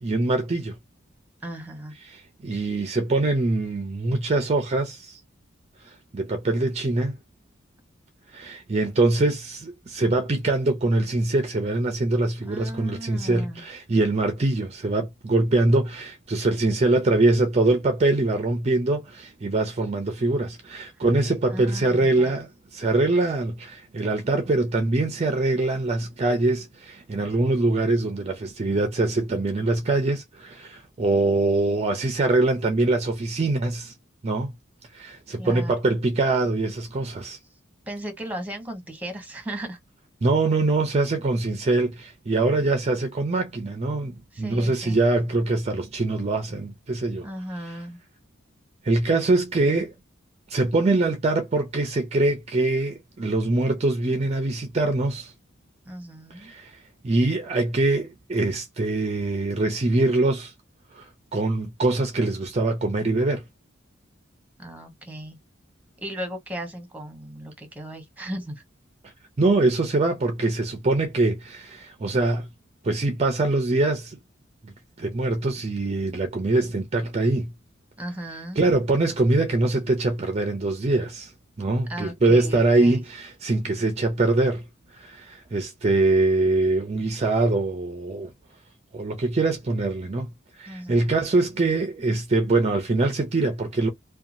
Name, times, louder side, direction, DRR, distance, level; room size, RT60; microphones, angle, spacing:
voice 1, 0.0-0.8 2.0-5.2 5.8-7.2 8.3-33.9 34.2-34.5 34.9-37.4 40.2-47.3 47.6-47.8 48.8-49.9 50.5-55.3 56.3-60.5 60.9-63.4 69.0-72.5 72.8-74.2 74.6-74.7 75.0-77.5 78.6-81.3 81.6-84.6 84.9-88.3 88.9-90.3 90.6-93.9, right 2 dB, 35° right, 0.5 m, -23 dB
voice 2, 1.4-1.9 12.5-13.6 21.5-22.4 35.4-35.7 37.9-39.8 44.3-45.0 47.2-48.0 55.9-56.5 64.6-65.4 66.0-68.6 78.0-78.6 81.9-83.0 90.7-91.1, right 1 dB, 10° right, 1.0 m, -36 dB
2.8 x 2.2 x 2.5 m
head